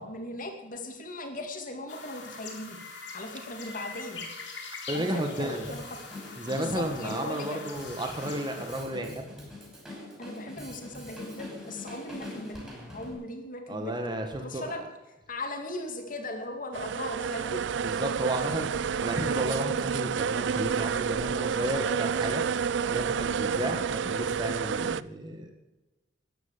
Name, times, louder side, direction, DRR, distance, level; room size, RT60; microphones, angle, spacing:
voice 1, 0.0-2.8 3.1-4.3 4.9-6.0 6.6-7.6 10.2-12.6 12.9-14.8 15.3-17.6, left 1 dB, 45° left, 4 dB, 2.4 m, -38 dB
sound 1, 1.9-8.8, left 4 dB, 70° left, 3.4 m, -43 dB
voice 2, 4.9-5.7 6.4-9.3 13.7-14.7 17.8-22.4 22.9-25.6, right 1 dB, 25° right, 4 dB, 1.4 m, -33 dB
Drum kit, 5.6-13.1, left 2 dB, 5° right, 5.9 m, -43 dB
sound 2, 16.7-25.0, right 6 dB, 70° right, 0.4 m, -29 dB
14.0 x 10.0 x 7.2 m, 1.1 s
head